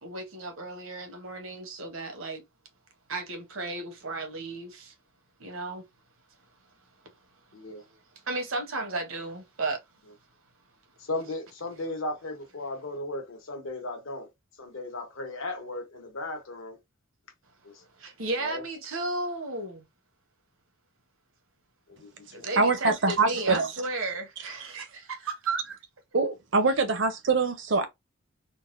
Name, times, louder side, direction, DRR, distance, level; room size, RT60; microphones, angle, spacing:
voice 1, 0.0-2.4 3.1-4.9 5.4-5.8 7.8-8.0 8.3-9.8 18.0-19.9 22.3-25.8, right 2 dB, 75° right, 1.0 m, -34 dB
voice 2, 11.1-14.3 14.6-16.8 17.6-17.7 18.4-18.6 22.0-22.1 22.4-22.5, left 2 dB, 75° left, 1.0 m, -36 dB
voice 3, 22.6-23.7 26.1-27.9, right 3 dB, 60° right, 0.7 m, -24 dB
3.9 x 2.1 x 2.5 m
head